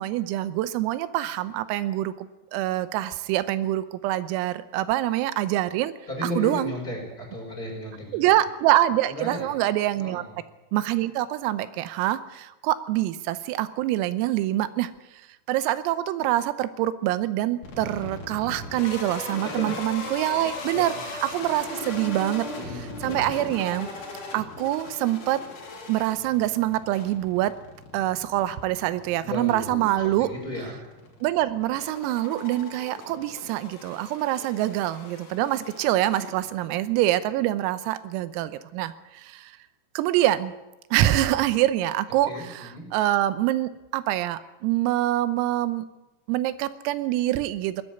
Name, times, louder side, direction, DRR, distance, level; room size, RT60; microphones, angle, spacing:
voice 1, 0.0-2.3 2.5-5.9 6.2-6.7 8.1-10.2 10.7-14.9 15.5-20.9 21.2-23.9 24.3-25.4 25.9-27.5 27.9-30.3 31.2-39.5 40.0-40.5 40.9-45.9 46.3-47.8, right 14 dB, 90° right, 14 dB, 3.6 m, -25 dB
voice 2, 6.1-8.3 9.1-9.5 10.0-10.4 19.4-19.8 20.7-21.0 22.6-23.1 29.2-30.8 42.3-42.9, left 1 dB, 20° left, 0 dB, 4.9 m, -35 dB
sound 1, 17.6-36.8, left 3 dB, 45° left, 3.9 m, -39 dB
19.0 x 14.0 x 9.8 m, 1.0 s
omnidirectional pair, 5.9 m